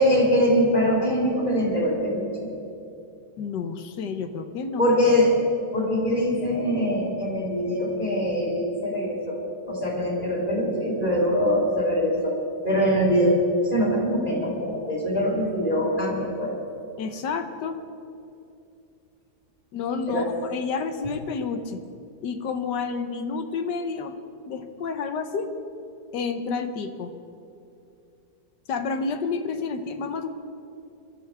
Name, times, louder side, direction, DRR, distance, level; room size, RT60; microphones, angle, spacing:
voice 1, 0.0-2.3 4.8-5.3 5.7-9.4 9.7-12.3 12.6-13.3 13.6-16.5 20.1-20.3, equal, 30° left, -5 dB, 4.4 m, -23 dB
voice 2, 3.4-4.9 17.0-17.8 19.7-21.8 22.2-24.1 24.5-25.5 26.1-27.1 28.7-30.3, left 5 dB, 90° left, 8 dB, 1.6 m, -30 dB
23.5 x 13.0 x 3.5 m, 2.7 s
omnidirectional pair, 1.8 m